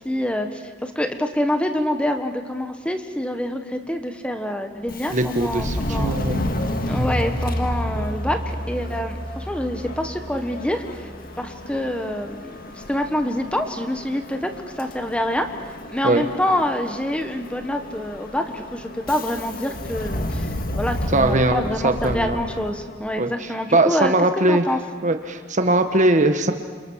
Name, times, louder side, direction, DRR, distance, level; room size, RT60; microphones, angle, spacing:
voice 1, 0.0-6.2 6.9-11.1 11.4-12.6 12.9-14.5 14.8-15.5 15.9-20.5 20.7-24.1 24.5-24.8, left 1 dB, 5° left, 6 dB, 1.4 m, -26 dB
Subway metro underground, 4.8-23.2, left 1 dB, 50° left, 1.9 m, -32 dB
voice 2, 5.1-6.4 16.0-16.3 21.1-22.4 23.2-24.7 25.0-26.5, right 2 dB, 40° right, 7 dB, 1.4 m, -20 dB
sound 1, 6.9-12.0, equal, 10° right, 3.4 m, -30 dB
28.5 x 27.5 x 6.5 m, 1.5 s
head